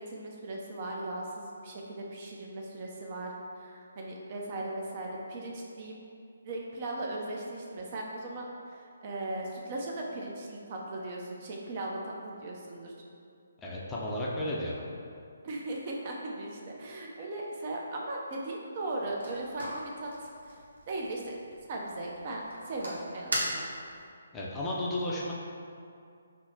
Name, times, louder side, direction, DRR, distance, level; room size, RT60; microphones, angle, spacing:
voice 1, 0.1-6.0 6.4-12.9 15.4-20.1 20.5-20.6 20.9-21.4 21.7-23.7, right 2 dB, 40° right, -2 dB, 0.5 m, -38 dB
voice 2, 13.6-14.7 24.3-25.3, left 1 dB, 10° left, -6 dB, 0.5 m, -33 dB
sound 1, 18.9-24.1, right 1 dB, 85° right, 1.0 m, -39 dB
6.0 x 2.0 x 2.7 m, 2.4 s
hypercardioid pair, 150°, 0 cm